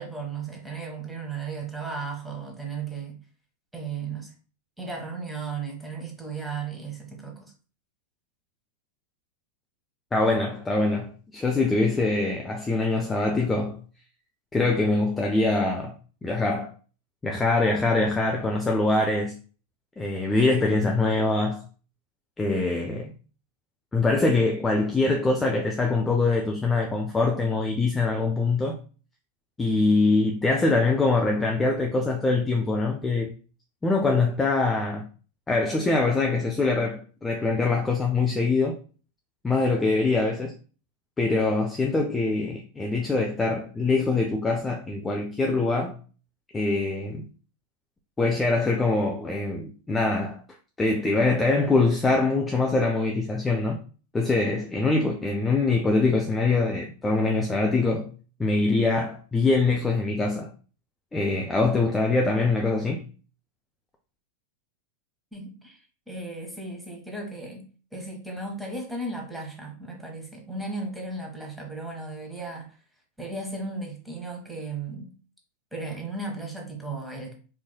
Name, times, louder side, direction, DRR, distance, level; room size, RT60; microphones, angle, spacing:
voice 1, 0.0-3.2 3.7-4.3 4.8-7.5 65.3-72.7 73.2-75.1 75.7-77.3, right 3 dB, 5° right, 1.1 m, -35 dB
voice 2, 10.1-13.8 14.5-15.9 16.2-16.7 17.2-19.3 20.0-21.6 22.4-23.1 23.9-28.8 29.6-33.3 33.8-35.1 35.5-38.8 39.4-40.5 41.2-46.0 46.5-47.3 48.2-50.4 50.8-53.8 54.1-58.1 58.4-60.5 61.1-63.0, left 3 dB, 15° left, 0.5 m, -23 dB
4.5 x 2.7 x 2.2 m
figure-of-eight pair, 90°, 0 cm